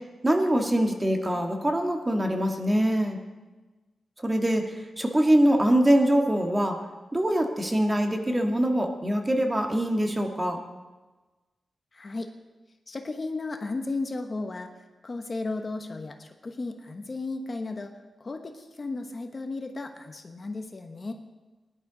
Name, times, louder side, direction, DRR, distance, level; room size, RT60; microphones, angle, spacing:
voice 1, 0.2-3.2 4.2-4.6 5.0-6.7 7.1-10.6, right 1 dB, 20° right, 3 dB, 1.7 m, -23 dB
voice 2, 11.9-12.3 12.9-14.7 15.0-17.9 18.2-21.1, left 3 dB, 40° left, 5 dB, 1.1 m, -34 dB
18.5 x 11.0 x 4.0 m, 1.2 s
cardioid pair, 75°, 0 cm